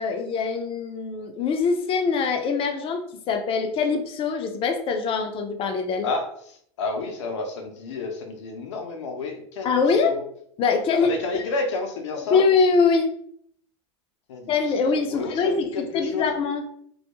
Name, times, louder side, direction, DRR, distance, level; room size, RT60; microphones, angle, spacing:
voice 1, 0.0-6.1 9.6-10.1 10.6-11.1 12.3-13.1 14.5-16.6, left 5 dB, 35° left, 6 dB, 0.5 m, -23 dB
voice 2, 6.0-10.2 10.9-12.4 14.3-14.5 14.8-16.3, left 3 dB, 80° left, 4 dB, 0.6 m, -31 dB
2.2 x 2.0 x 3.0 m, 0.66 s
hypercardioid pair, 95°, 15 cm